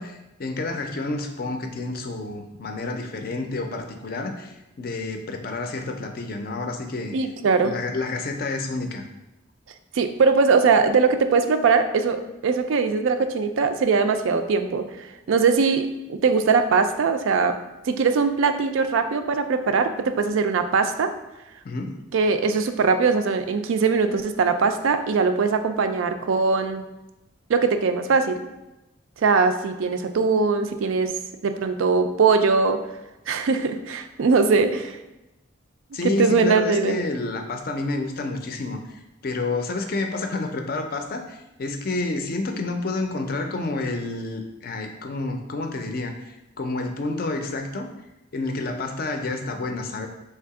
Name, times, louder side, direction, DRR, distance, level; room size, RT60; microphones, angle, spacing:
voice 1, 0.0-7.1 7.6-9.1 21.6-22.0 35.9-47.9 48.3-50.1, left 2 dB, 45° left, 5 dB, 0.4 m, -29 dB
voice 2, 7.1-7.7 9.9-14.9 15.3-17.6 17.9-21.1 22.1-26.8 27.5-28.4 29.2-31.2 31.4-32.8 33.3-35.0 36.2-37.0, right 4 dB, 75° right, 8 dB, 0.4 m, -21 dB
3.4 x 2.8 x 4.7 m, 0.97 s
head